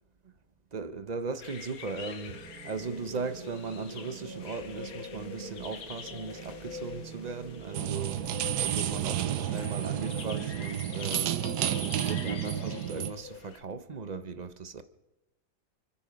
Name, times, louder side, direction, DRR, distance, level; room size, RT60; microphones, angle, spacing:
voice 1, 0.7-8.2 8.6-11.5 11.9-14.8, right 4 dB, 40° right, 0.6 m, -38 dB
sound 1, 1.4-13.6, left 6 dB, 65° left, 1.6 m, -44 dB
sound 2, 2.3-10.2, right 10 dB, 60° right, 1.4 m, -48 dB
sound 3, 7.7-13.1, right 11 dB, 80° right, 1.3 m, -31 dB
28.5 x 9.8 x 5.1 m
omnidirectional pair, 1.8 m